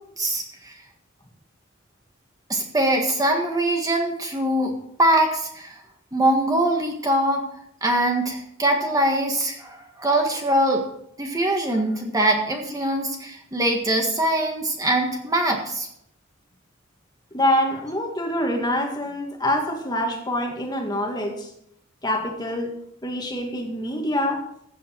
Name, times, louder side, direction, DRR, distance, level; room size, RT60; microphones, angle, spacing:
voice 1, 0.2-0.7 2.5-4.7 5.0-5.8 6.1-7.4 7.8-10.8 11.2-15.9, right 1 dB, 20° right, 2 dB, 1.6 m, -22 dB
voice 2, 17.3-21.5 22.0-24.4, left 1 dB, 20° left, 2 dB, 2.0 m, -25 dB
15.0 x 8.3 x 4.6 m, 0.73 s
head